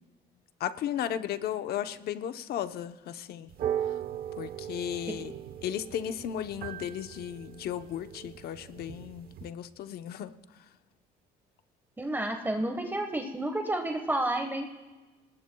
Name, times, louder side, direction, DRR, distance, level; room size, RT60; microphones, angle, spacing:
voice 1, 0.6-3.5 4.4-5.3 5.6-10.3, left 10 dB, 65° left, 9 dB, 0.9 m, -35 dB
sound 1, 3.5-9.5, right 10 dB, 60° right, 1.0 m, -38 dB
voice 2, 12.0-14.8, right 1 dB, 10° right, 4 dB, 1.4 m, -31 dB
30.0 x 20.0 x 2.3 m, 1.2 s
cardioid pair, 110°, 17 cm